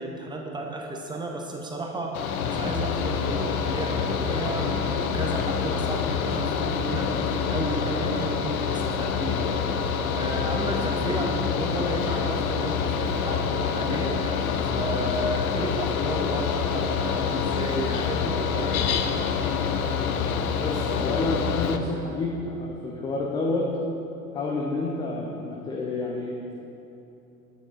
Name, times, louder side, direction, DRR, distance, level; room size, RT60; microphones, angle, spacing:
voice 1, 0.0-2.2 2.4-9.5 10.1-18.7, right 2 dB, 10° right, 1 dB, 0.9 m, -33 dB
Mechanical fan, 2.1-21.8, left 6 dB, 70° left, 0.7 m, -26 dB
voice 2, 20.5-23.7 24.3-26.6, left 2 dB, 10° left, -1 dB, 0.3 m, -29 dB
8.7 x 6.7 x 3.9 m, 2.8 s
figure-of-eight pair, 80°, 45 cm